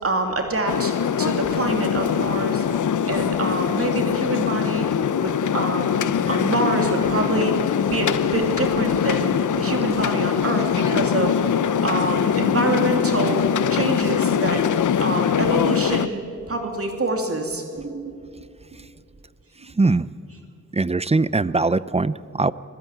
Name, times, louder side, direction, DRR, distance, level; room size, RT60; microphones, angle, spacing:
voice 1, 0.0-0.9 1.2-2.6 3.1-4.9 5.2-11.4 11.8-14.6 15.0-16.2 16.5-18.1, right 2 dB, 50° right, 3 dB, 3.0 m, -26 dB
sound 1, 0.7-16.1, left 8 dB, 75° left, 0.7 m, -22 dB
voice 2, 20.7-22.5, right 3 dB, 20° right, 17 dB, 0.5 m, -21 dB
26.0 x 16.0 x 9.1 m, 2.4 s
wide cardioid pair, 80°, 30 cm